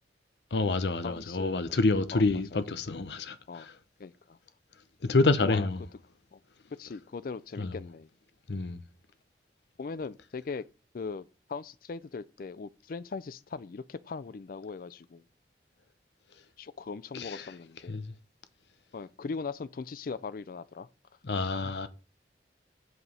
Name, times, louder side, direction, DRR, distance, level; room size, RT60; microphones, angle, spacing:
voice 1, 0.5-3.7 5.0-5.8 7.6-7.7 8.5-8.8 17.1-17.4 17.9-18.1 21.2-21.9, left 3 dB, 75° left, 0.7 m, -28 dB
voice 2, 1.0-1.8 2.1-2.3 3.5-3.7 4.0-4.4 5.4-5.7 6.3-6.4 6.8-8.1 9.8-10.7 10.9-15.2 16.6-18.0 18.9-20.9 21.4-21.7, left 4 dB, 55° left, 0.4 m, -39 dB
8.0 x 5.0 x 5.5 m
head